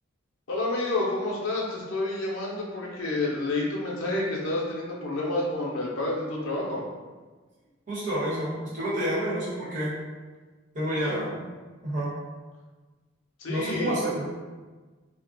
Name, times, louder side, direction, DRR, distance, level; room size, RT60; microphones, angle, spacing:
voice 1, 0.5-6.8 11.0-11.1 13.4-13.9, left 2 dB, 75° left, -3 dB, 0.6 m, -29 dB
voice 2, 7.9-9.9 10.7-11.4 11.8-12.1 13.5-14.3, right 1 dB, 40° right, -8 dB, 1.0 m, -29 dB
2.4 x 2.1 x 3.8 m, 1.3 s
head